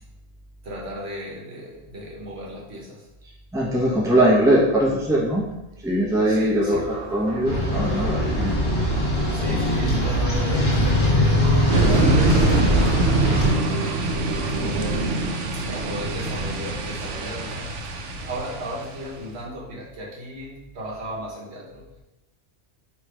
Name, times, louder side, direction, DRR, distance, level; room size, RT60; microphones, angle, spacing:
voice 1, 0.6-3.1 6.3-6.9 9.3-13.5 14.5-15.3 15.5-17.7 18.2-22.0, equal, 70° right, -3 dB, 1.2 m, -36 dB
voice 2, 3.5-5.5 5.8-8.6 9.3-9.6, right 1 dB, 5° right, -5 dB, 0.7 m, -21 dB
sound 1, 6.6-15.0, right 2 dB, 40° right, 1.3 m, -35 dB
sound 2, 7.4-13.5, equal, 50° left, 1.4 m, -21 dB
sound 3, 11.7-19.2, right 2 dB, 85° right, 0.9 m, -24 dB
3.2 x 3.0 x 4.7 m, 0.96 s
omnidirectional pair, 1.2 m